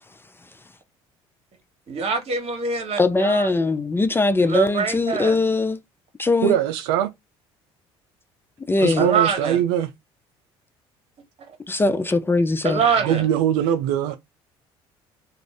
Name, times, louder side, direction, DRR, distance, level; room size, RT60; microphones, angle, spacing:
voice 1, 1.9-3.5 4.4-5.4 9.0-9.6 12.6-13.3, right 6 dB, 50° right, 1.3 m, -24 dB
voice 2, 3.0-5.8 6.2-6.6 8.7-9.1 11.7-12.8, left 3 dB, 15° left, 0.4 m, -21 dB
voice 3, 6.4-7.1 8.8-9.9 13.0-14.2, right 10 dB, 80° right, 0.4 m, -21 dB
2.5 x 2.4 x 3.2 m
hypercardioid pair, 70°, 13 cm